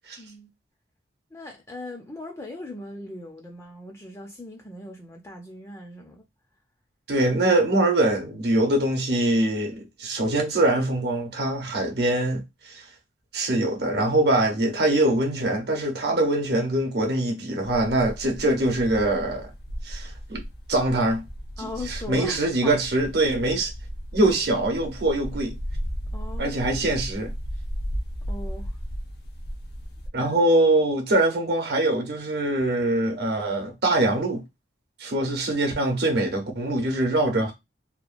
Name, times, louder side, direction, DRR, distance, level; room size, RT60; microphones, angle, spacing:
voice 1, 0.2-0.5 1.3-6.2 21.6-22.9 26.1-26.8 28.3-28.8 30.2-30.3, left 2 dB, 15° left, 0.4 m, -39 dB
voice 2, 7.1-12.9 13.3-19.5 19.8-20.4 20.7-21.2 21.6-23.7 24.1-25.6 26.4-27.3 30.1-34.4 35.0-37.5, right 1 dB, 60° right, 0.8 m, -23 dB
sound 1, 17.6-30.1, equal, 60° left, 0.6 m, -35 dB
2.9 x 2.2 x 2.4 m
head